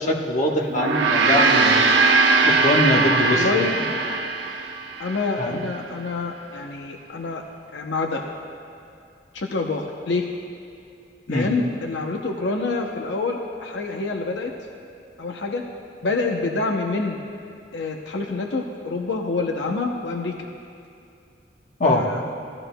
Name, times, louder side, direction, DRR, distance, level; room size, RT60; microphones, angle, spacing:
voice 1, 0.0-2.0 2.4-3.6 5.4-5.6 11.3-11.5 21.8-22.0, left 1 dB, 45° left, 0 dB, 1.2 m, -22 dB
Gong, 0.7-5.3, right 3 dB, 85° right, 0.9 m, -20 dB
voice 2, 3.3-3.8 5.0-7.4 7.7-8.2 9.3-10.3 11.3-14.6 15.2-15.7 16.0-17.2 17.7-20.3 21.8-22.2, left 3 dB, 80° left, 2 dB, 0.7 m, -27 dB
17.0 x 13.0 x 2.2 m, 2.6 s
head